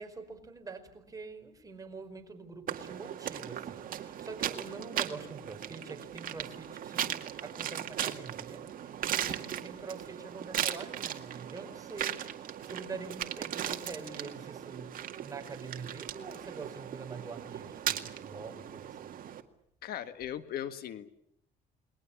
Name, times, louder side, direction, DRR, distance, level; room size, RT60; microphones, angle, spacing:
voice 1, 0.0-7.2 7.4-12.3 12.7-19.2, right 4 dB, 20° right, 5 dB, 4.8 m, -45 dB
sound 1, 2.7-19.4, right 10 dB, 55° right, 2.1 m, -38 dB
voice 2, 19.8-21.1, left 10 dB, 65° left, 11 dB, 1.7 m, -38 dB
29.5 x 21.5 x 7.3 m, 0.72 s
cardioid pair, 110°, 17 cm